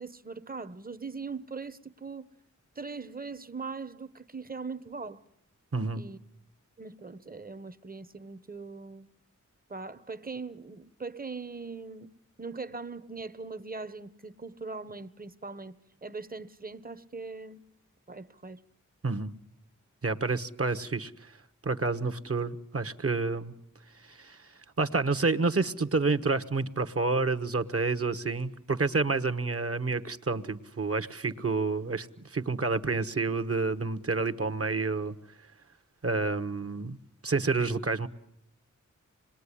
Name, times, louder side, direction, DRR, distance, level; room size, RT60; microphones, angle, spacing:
voice 1, 0.0-2.3 2.7-5.2 5.9-6.2 6.8-9.1 9.7-12.1 12.4-15.8 16.0-17.6 18.1-18.6 31.2-31.3, right 4 dB, 30° right, 1.1 m, -40 dB
voice 2, 5.7-6.0 19.0-19.3 20.0-21.3 21.6-23.5 24.0-35.1 36.0-37.0 37.2-38.1, right 3 dB, 50° right, 1.3 m, -29 dB
26.5 x 21.0 x 10.0 m
wide cardioid pair, 65°, 31 cm